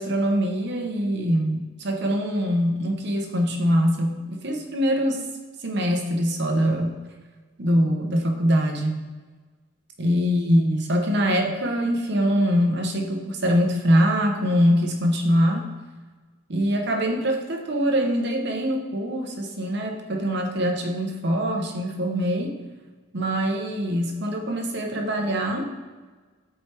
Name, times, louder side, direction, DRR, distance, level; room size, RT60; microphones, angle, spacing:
voice 1, 0.0-5.3 5.6-7.0 7.6-9.0 10.0-15.7 16.5-22.6 23.1-25.7, equal, 55° right, 3 dB, 0.8 m, -23 dB
7.6 x 4.4 x 3.3 m, 1.4 s
head